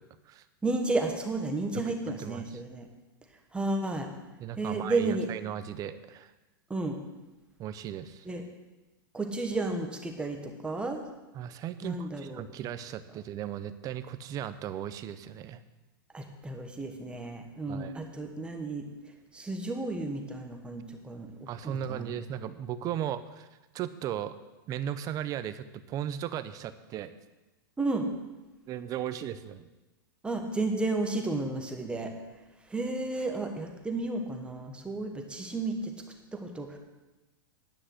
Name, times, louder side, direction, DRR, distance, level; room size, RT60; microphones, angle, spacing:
voice 1, 0.6-2.9 3.5-4.1 4.6-5.3 6.7-7.0 8.2-8.4 9.1-11.0 11.8-12.4 16.1-18.9 19.3-21.3 21.6-22.1 27.8-28.1 30.2-32.1 32.7-35.9 36.3-36.8, right 2 dB, 10° right, 3 dB, 1.4 m, -32 dB
voice 2, 2.2-2.6 4.4-6.3 7.6-8.3 11.3-15.6 17.7-17.9 21.5-23.5 23.7-24.3 24.7-27.1 28.7-29.7, right 10 dB, 30° right, 12 dB, 0.7 m, -36 dB
10.0 x 6.1 x 8.1 m, 1.1 s
hypercardioid pair, 135°, 12 cm